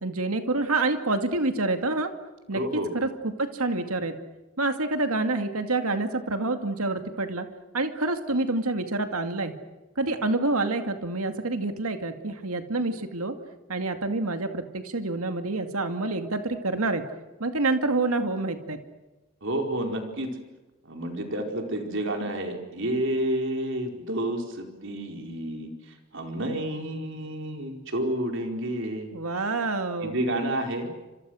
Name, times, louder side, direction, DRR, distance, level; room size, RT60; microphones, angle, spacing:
voice 1, 0.0-2.1 2.5-2.6 2.9-4.2 4.6-7.5 7.7-9.6 10.0-13.4 13.7-17.0 17.4-18.8 29.1-30.2, right 2 dB, 85° right, 7 dB, 2.4 m, -27 dB
voice 2, 2.5-2.9 19.4-20.3 20.8-25.7 26.1-29.1 30.0-30.9, right 1 dB, 60° right, 3 dB, 4.6 m, -30 dB
30.0 x 27.0 x 6.4 m, 1.1 s
head